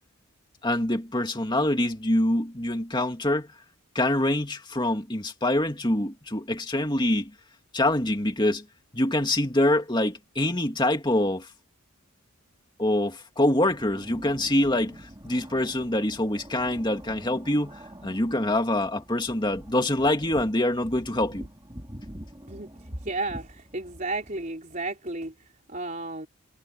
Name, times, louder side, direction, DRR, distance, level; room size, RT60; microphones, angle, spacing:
voice 1, 0.6-3.5 3.9-7.3 7.7-8.6 8.9-11.5 12.8-21.5, left 1 dB, 20° left, 2.5 m, -25 dB
sound 1, 13.6-24.6, equal, 20° right, 2.5 m, -45 dB
voice 2, 22.5-26.3, right 2 dB, 35° right, 4.3 m, -33 dB
head